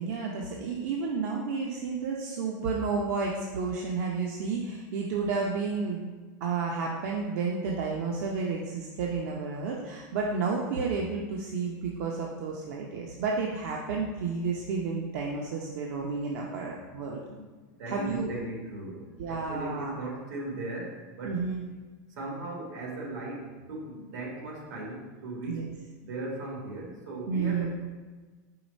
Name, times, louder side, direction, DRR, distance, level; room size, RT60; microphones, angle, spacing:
voice 1, 0.0-6.1 6.4-17.2 17.9-18.3 19.2-19.9 21.2-21.6 25.5-25.7 27.3-27.7, right 4 dB, 65° right, -1 dB, 0.7 m, -31 dB
voice 2, 17.2-21.5 22.1-25.7 26.0-27.7, right 2 dB, 90° right, -2 dB, 1.8 m, -38 dB
4.8 x 3.9 x 5.3 m, 1.3 s
supercardioid pair, 155°, 9 cm